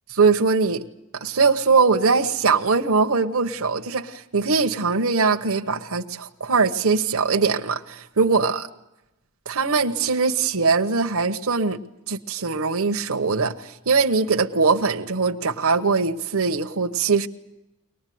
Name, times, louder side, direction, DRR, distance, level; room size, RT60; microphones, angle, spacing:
voice 1, 0.1-0.8 1.1-8.7 9.5-11.8 12.1-17.3, right 4 dB, 65° right, 5 dB, 1.1 m, -21 dB
23.5 x 19.5 x 9.3 m, 0.94 s
head